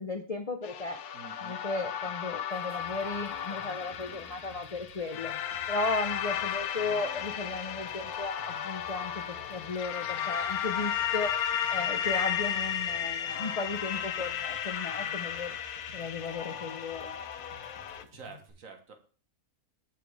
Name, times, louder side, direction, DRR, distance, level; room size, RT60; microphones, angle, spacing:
voice 1, 0.0-1.0 1.4-5.3 5.7-11.4 11.7-15.5 15.9-17.1, left 3 dB, 45° left, 5 dB, 0.5 m, -35 dB
sound 1, 0.6-18.0, left 9 dB, 85° left, 1.2 m, -34 dB
voice 2, 1.1-1.6 2.0-2.1 18.1-19.0, right 5 dB, 65° right, 6 dB, 1.6 m, -48 dB
sound 2, 2.5-18.5, left 1 dB, 45° right, 3.2 m, -55 dB
8.5 x 5.7 x 4.7 m, 0.43 s
omnidirectional pair, 1.6 m